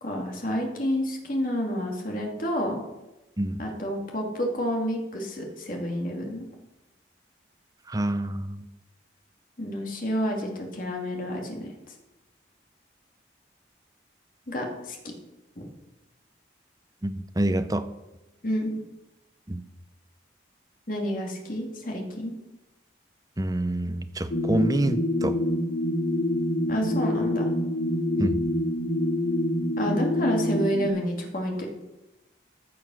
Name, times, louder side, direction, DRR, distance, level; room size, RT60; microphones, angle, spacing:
voice 1, 0.0-2.8 3.6-6.5 9.6-11.7 14.5-15.0 15.6-15.7 18.4-18.8 20.9-22.3 26.7-27.5 29.8-31.7, equal, 45° left, 0 dB, 2.5 m, -29 dB
voice 2, 7.9-8.7 17.0-17.9 19.5-19.6 23.4-25.4 28.2-28.4, right 1 dB, 20° right, 10 dB, 0.6 m, -27 dB
sound 1, 24.3-30.9, left 1 dB, 85° left, 2.8 m, -26 dB
14.5 x 7.1 x 6.3 m, 0.98 s
head